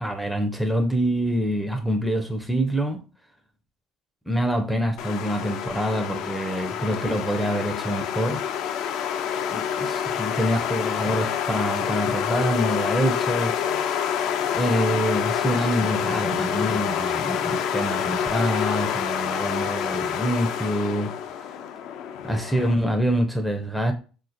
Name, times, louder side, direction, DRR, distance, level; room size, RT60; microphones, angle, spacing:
voice 1, 0.0-3.0 4.3-8.4 9.5-13.9 14.5-21.4 22.3-23.9, equal, ahead, 0.5 m, -26 dB
sound 1, 5.0-22.7, left 8 dB, 60° left, 0.3 m, -27 dB
3.9 x 2.5 x 2.5 m
hypercardioid pair, 65°, 0 cm